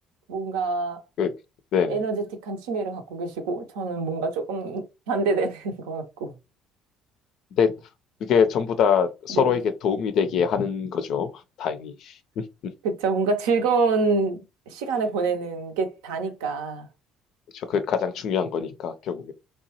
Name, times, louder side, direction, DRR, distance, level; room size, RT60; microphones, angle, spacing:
voice 1, 0.3-1.0 1.9-6.3 9.3-9.5 12.8-14.4 14.7-16.9, right 4 dB, 70° right, 0.5 m, -26 dB
voice 2, 8.3-11.3 11.6-12.1 17.5-19.3, left 7 dB, 55° left, 0.4 m, -23 dB
2.9 x 2.2 x 2.8 m
figure-of-eight pair, 55°, 0 cm